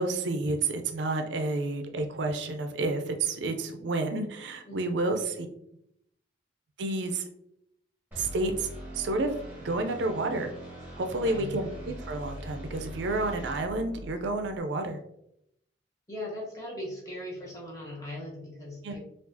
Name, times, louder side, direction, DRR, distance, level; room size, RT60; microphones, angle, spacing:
voice 1, 0.0-5.5 6.8-7.2 8.2-8.7 8.9-9.4 9.6-10.5 11.0-15.0 18.8-19.0, right 2 dB, 75° right, 6 dB, 0.4 m, -30 dB
voice 2, 4.6-5.1 11.1-11.5 16.1-19.0, left 1 dB, 20° left, -5 dB, 1.2 m, -39 dB
sound 1, 8.1-14.6, right 1 dB, 10° right, 1.2 m, -42 dB
4.6 x 2.4 x 2.6 m, 0.77 s
head